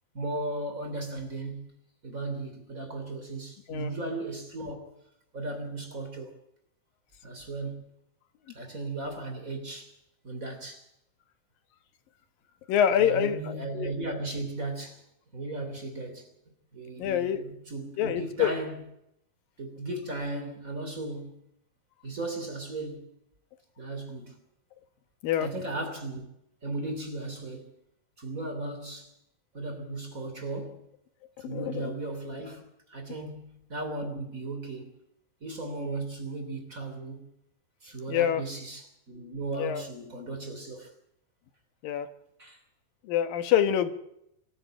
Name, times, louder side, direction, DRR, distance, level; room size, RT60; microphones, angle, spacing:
voice 1, 0.1-1.7 2.0-5.0 5.3-6.4 7.2-7.9 8.5-10.0 10.2-10.8 12.9-15.0 15.3-16.3 16.7-18.9 19.6-21.5 22.0-23.1 23.8-24.4 25.4-26.3 26.6-27.7 28.2-29.1 29.5-30.8 31.4-35.0 35.4-37.3 37.8-40.9 42.4-42.6, right 2 dB, 25° right, 3.2 m, -36 dB
voice 2, 12.7-13.4 13.7-13.9 17.0-17.5 18.0-18.5 25.2-25.5 31.4-31.9 38.1-38.4 39.6-39.8 41.8-42.1 43.0-43.9, left 9 dB, 85° left, 3.1 m, -25 dB
24.0 x 13.5 x 9.0 m
omnidirectional pair, 3.9 m